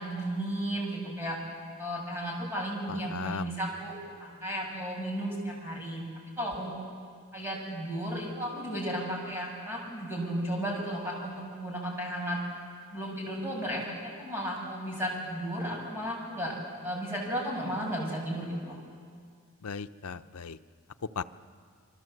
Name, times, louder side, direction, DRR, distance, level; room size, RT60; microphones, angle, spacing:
voice 1, 0.0-1.4 1.8-6.0 6.4-6.9 7.3-12.4 12.9-16.5 16.8-18.8, equal, 10° right, -3 dB, 6.9 m, -34 dB
voice 2, 2.9-3.5 19.6-20.6 21.1-21.2, left 5 dB, 85° left, 10 dB, 0.7 m, -37 dB
26.0 x 24.5 x 7.9 m, 2.1 s
head